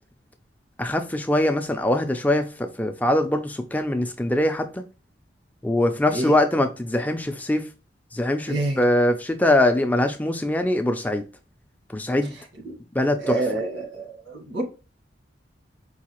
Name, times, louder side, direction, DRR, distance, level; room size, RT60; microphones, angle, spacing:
voice 1, 0.8-4.8 5.6-7.6 8.1-11.2 11.9-12.4 12.9-13.4, left 1 dB, 10° left, 0.4 m, -22 dB
voice 2, 8.5-8.8 12.6-12.8 13.2-14.6, right 2 dB, 85° right, 1.5 m, -28 dB
4.7 x 2.4 x 3.0 m
head